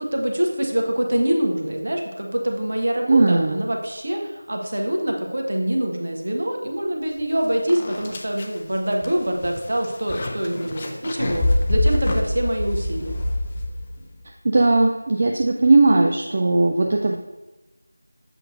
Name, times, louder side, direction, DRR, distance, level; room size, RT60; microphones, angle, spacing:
voice 1, 0.0-13.2, right 1 dB, 55° right, 1 dB, 1.2 m, -25 dB
voice 2, 3.1-3.6 14.4-17.2, right 2 dB, 35° right, 1 dB, 0.4 m, -18 dB
sound 1, 7.2-7.3 7.7-14.1, left 1 dB, 25° left, 0.5 m, -25 dB
7.6 x 6.4 x 2.6 m, 1.1 s
figure-of-eight pair, 170°, 0 cm